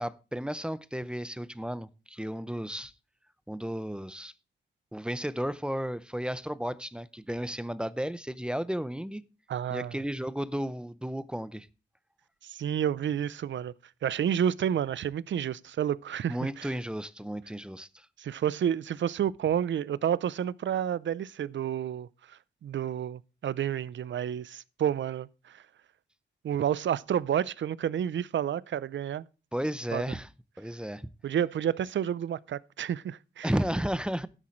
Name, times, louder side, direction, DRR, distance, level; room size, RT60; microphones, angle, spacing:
voice 1, 0.0-2.9 3.5-4.3 4.9-9.2 9.7-11.7 16.3-18.1 29.5-30.3 30.6-31.1 33.4-34.3, equal, 5° right, 0.6 m, -33 dB
voice 2, 9.5-10.0 12.4-13.7 14.0-16.7 18.2-22.1 22.6-25.6 26.4-29.2 29.9-30.0 31.2-33.5, right 9 dB, 75° right, 0.6 m, -30 dB
12.5 x 10.0 x 3.1 m
wide cardioid pair, 155°, 19 cm